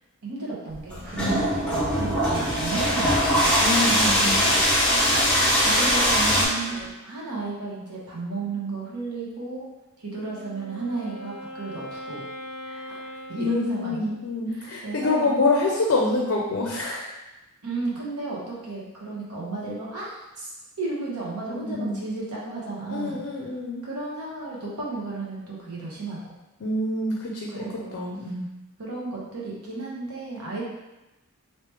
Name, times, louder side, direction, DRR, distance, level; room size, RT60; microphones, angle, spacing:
voice 1, 0.2-3.6 4.0-4.5 5.6-9.7 10.0-12.2 13.3-14.0 14.5-15.3 17.6-20.5 20.8-23.2 23.8-26.2 27.5-27.9 28.8-30.6, right 3 dB, 85° right, -5 dB, 1.1 m, -33 dB
sound 1, 0.7-6.5, equal, 5° left, 0.7 m, -21 dB
sound 2, 1.0-6.9, right 1 dB, 40° right, 0.7 m, -37 dB
voice 2, 3.6-4.5 12.7-13.0 13.4-17.2 21.5-22.1 22.9-23.8 26.6-28.5, left 2 dB, 55° left, -1 dB, 0.5 m, -26 dB
Wind instrument woodwind instrument, 10.0-14.4, equal, 65° right, 1.3 m, -40 dB
3.0 x 2.9 x 3.3 m, 1.0 s
head